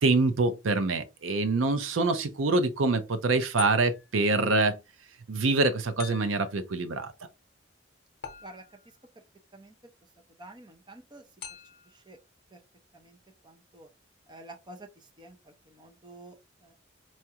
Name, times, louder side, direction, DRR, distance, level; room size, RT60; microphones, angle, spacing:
voice 1, 0.0-4.8 5.3-7.1, right 3 dB, 80° right, 0.6 m, -25 dB
sound 1, 3.6-4.2 6.0-6.6 8.2-9.0 11.4-12.0, left 9 dB, 55° left, 0.8 m, -43 dB
voice 2, 10.4-11.2 11.9-12.2 12.5-12.6 12.9-13.2 13.4-13.9 14.3-16.7, right 2 dB, 25° right, 0.6 m, -49 dB
4.3 x 2.4 x 2.8 m
head